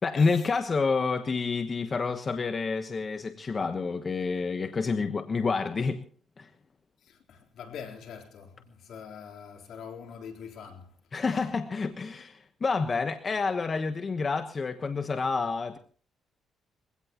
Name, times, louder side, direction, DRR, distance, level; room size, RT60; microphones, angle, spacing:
voice 1, 0.0-6.0 6.4-6.5 11.1-15.8, left 4 dB, 35° left, 1.3 m, -28 dB
voice 2, 7.1-10.9, left 7 dB, 70° left, 4.0 m, -44 dB
22.5 x 17.0 x 3.1 m
cardioid pair, 90°, 0 cm